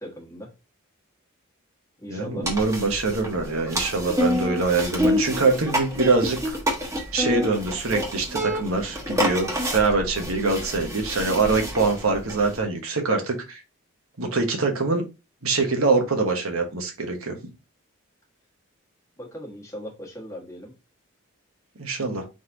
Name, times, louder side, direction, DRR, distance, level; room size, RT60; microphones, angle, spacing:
voice 1, 0.0-0.5 2.0-2.5 19.2-20.7, equal, 15° left, -1 dB, 1.4 m, -38 dB
voice 2, 2.1-6.4 7.1-13.6 14.2-15.0 15.4-17.4 21.8-22.2, right 3 dB, 80° right, 4 dB, 1.2 m, -24 dB
sound 1, 2.4-12.6, equal, 15° right, 1.1 m, -28 dB
4.0 x 3.2 x 3.9 m, 0.28 s
head